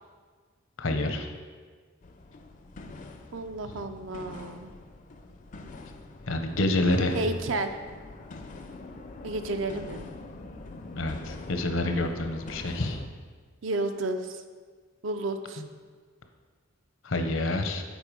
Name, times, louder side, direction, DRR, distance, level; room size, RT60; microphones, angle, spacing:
voice 1, 0.8-1.3 6.3-7.2 10.9-13.0 17.0-17.8, left 2 dB, 70° left, 6 dB, 0.7 m, -27 dB
sound 1, 2.0-13.1, left 2 dB, 40° left, 0.4 m, -44 dB
voice 2, 3.3-4.7 7.1-7.7 9.2-10.1 13.6-14.4 15.0-15.6, right 2 dB, 65° right, 8 dB, 0.5 m, -31 dB
8.0 x 4.5 x 5.0 m, 1.6 s
head